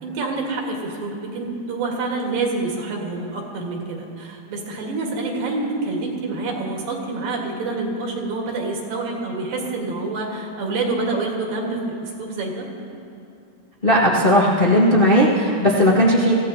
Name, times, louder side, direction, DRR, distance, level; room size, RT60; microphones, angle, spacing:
voice 1, 0.0-12.7, right 3 dB, 70° right, 0 dB, 3.3 m, -27 dB
voice 2, 13.8-16.3, equal, 60° left, -7 dB, 0.5 m, -16 dB
26.0 x 15.5 x 2.9 m, 2.6 s
omnidirectional pair, 4.3 m